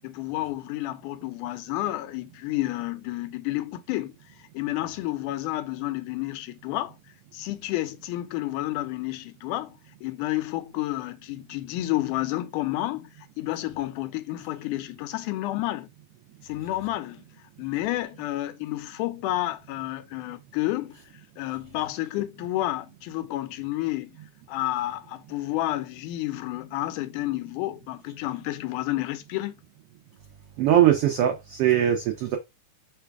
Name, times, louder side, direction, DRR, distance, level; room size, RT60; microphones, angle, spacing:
voice 1, 0.0-4.1 4.4-7.0 7.3-13.1 13.4-15.9 16.4-17.2 17.6-21.0 21.4-24.2 24.5-29.6, left 16 dB, 85° left, 2.1 m, -30 dB
voice 2, 30.6-32.4, right 11 dB, 90° right, 1.3 m, -21 dB
4.8 x 2.3 x 4.6 m
omnidirectional pair, 3.5 m